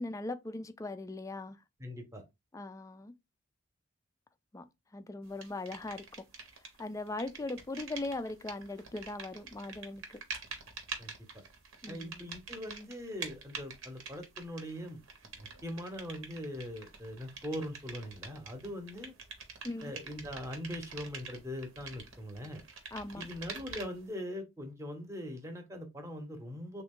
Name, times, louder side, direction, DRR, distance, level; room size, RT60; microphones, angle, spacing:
voice 1, 0.0-1.6 2.5-3.1 4.5-4.7 4.9-6.2 6.8-10.2 11.8-12.3 19.6-19.9 22.9-23.3, left 2 dB, 15° left, 0.3 m, -39 dB
voice 2, 1.8-2.2 11.0-11.1 11.9-15.0 15.3-19.1 19.8-22.6 23.1-26.8, equal, 15° right, 0.8 m, -41 dB
sound 1, 5.4-6.8 7.1-24.1, right 5 dB, 75° right, 1.0 m, -46 dB
3.5 x 2.2 x 3.7 m
head